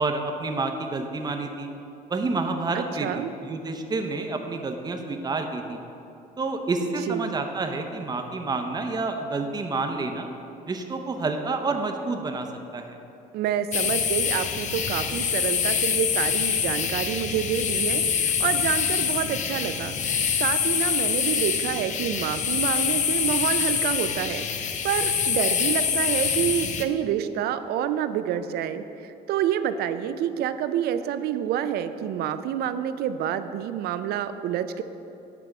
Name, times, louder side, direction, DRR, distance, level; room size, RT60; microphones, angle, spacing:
voice 1, 0.0-1.7 2.1-5.8 6.4-10.3 10.6-12.5 12.7-13.0, right 3 dB, 25° right, 5 dB, 0.6 m, -29 dB
voice 2, 2.7-3.3 7.1-7.4 13.3-34.8, right 10 dB, 70° right, 11 dB, 0.4 m, -28 dB
sound 1, 13.7-26.8, left 7 dB, 45° left, 0.5 m, -25 dB
8.7 x 3.5 x 5.9 m, 2.8 s
cardioid pair, 110°, 17 cm